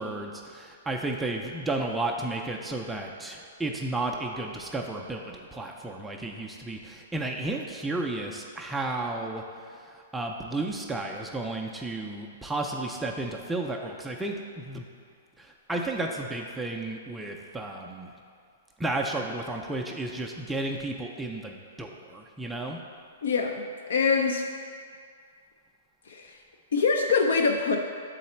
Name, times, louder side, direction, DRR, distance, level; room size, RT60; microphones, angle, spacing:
voice 1, 0.0-14.8 15.4-18.1 18.8-22.8, right 2 dB, 5° right, 0 dB, 0.3 m, -33 dB
voice 2, 23.2-24.5 26.1-26.4 26.7-27.8, left 5 dB, 85° left, 3 dB, 0.4 m, -24 dB
7.4 x 3.9 x 4.3 m, 2.2 s
hypercardioid pair, 165°, 0 cm